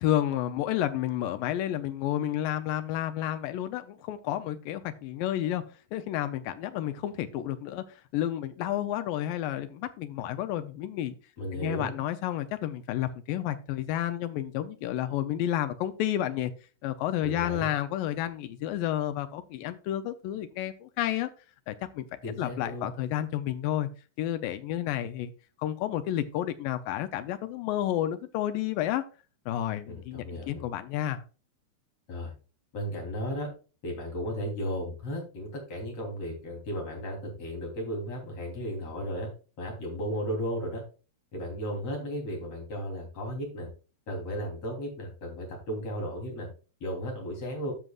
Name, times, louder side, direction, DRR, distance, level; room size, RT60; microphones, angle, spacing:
voice 1, 0.0-5.6 5.9-11.2 11.5-16.5 16.8-21.3 21.7-22.1 22.4-23.9 24.2-25.3 25.6-29.0 29.5-31.2, left 12 dB, 80° left, 10 dB, 2.1 m, -31 dB
voice 2, 11.4-12.0 17.2-17.7 22.2-22.9 29.9-30.6 32.1-32.3 32.7-33.5 33.8-39.3 39.6-40.8 41.3-43.7 44.1-46.5 46.8-47.7, equal, 40° left, 1 dB, 4.1 m, -35 dB
13.0 x 6.2 x 2.4 m, 0.35 s
omnidirectional pair, 4.6 m